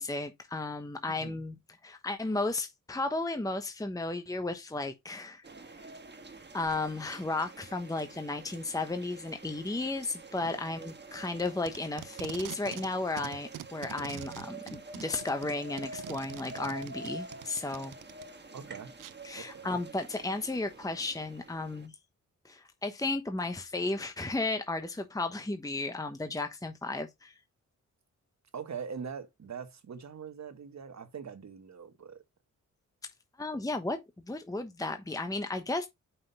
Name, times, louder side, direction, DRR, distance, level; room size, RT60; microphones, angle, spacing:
voice 1, 0.0-1.6 1.8-5.4 6.5-17.9 19.2-21.9 22.4-27.3 33.4-34.0 34.3-35.9, left 2 dB, 10° left, 1.0 m, -34 dB
voice 2, 1.1-1.4 10.4-10.6 14.0-14.1 18.5-18.9 19.3-19.8 28.5-32.2, right 6 dB, 60° right, 1.3 m, -42 dB
sound 1, 5.4-21.9, right 2 dB, 35° right, 1.7 m, -48 dB
Packing tape duct tape, 11.2-12.9 13.2-18.2 19.0-19.1, right 11 dB, 75° right, 0.6 m, -44 dB
5.7 x 3.8 x 5.4 m
cardioid pair, 60°, 32 cm